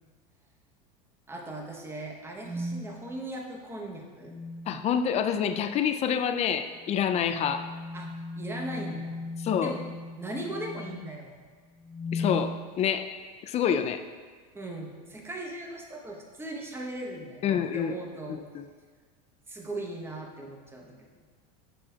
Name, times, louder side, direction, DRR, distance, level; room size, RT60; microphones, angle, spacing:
voice 1, 1.3-4.4 7.9-8.1 8.4-9.2 9.6-9.8 10.1-11.4 14.5-18.4 19.5-21.0, right 1 dB, 10° right, 0 dB, 0.9 m, -38 dB
sound 1, 2.4-2.9 4.2-4.7 6.9-11.1 11.8-12.5, left 2 dB, 60° right, 1.8 m, -37 dB
voice 2, 4.7-7.7 9.4-9.7 12.1-13.1 13.4-14.0 17.4-17.9 18.5-18.6, left 8 dB, 30° left, 8 dB, 0.4 m, -27 dB
7.5 x 6.2 x 2.3 m, 1.5 s
supercardioid pair, 115°, 21 cm